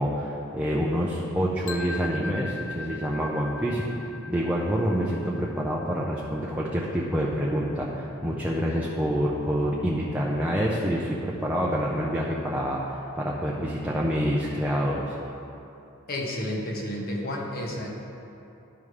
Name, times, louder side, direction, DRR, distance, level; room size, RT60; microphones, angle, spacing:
voice 1, 0.0-3.8 4.3-15.1, equal, 5° right, -4 dB, 0.6 m, -27 dB
sound 1, 1.7-7.6, left 4 dB, 75° left, 0.6 m, -41 dB
voice 2, 16.1-17.9, left 1 dB, 45° left, -1 dB, 1.1 m, -31 dB
12.5 x 5.4 x 3.3 m, 2.9 s
head